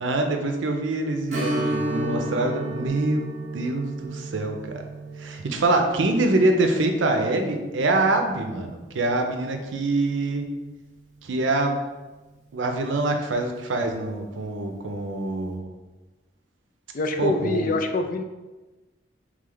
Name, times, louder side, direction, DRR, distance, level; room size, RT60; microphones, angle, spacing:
voice 1, 0.0-4.8 5.2-10.5 11.2-11.7 12.5-15.7 17.2-17.7, right 2 dB, 80° right, 4 dB, 0.6 m, -25 dB
Strum, 1.3-10.5 10.8-10.9 13.5-13.6 14.1-14.2, right 2 dB, 40° right, 0.8 m, -33 dB
voice 2, 16.9-18.2, left 2 dB, 45° left, 6 dB, 0.4 m, -25 dB
3.6 x 3.2 x 3.8 m, 1.2 s
head